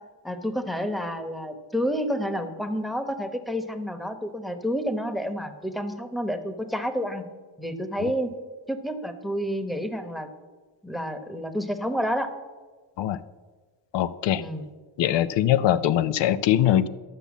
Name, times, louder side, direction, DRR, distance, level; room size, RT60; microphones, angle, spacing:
voice 1, 0.0-7.3 7.6-8.3 8.7-10.3 10.8-12.3 14.4-14.7, equal, ahead, 8 dB, 1.0 m, -29 dB
voice 2, 13.9-14.4 15.0-16.9, left 11 dB, 90° left, 14 dB, 0.6 m, -22 dB
12.5 x 6.9 x 7.2 m, 1.4 s
cardioid pair, 120°, 42 cm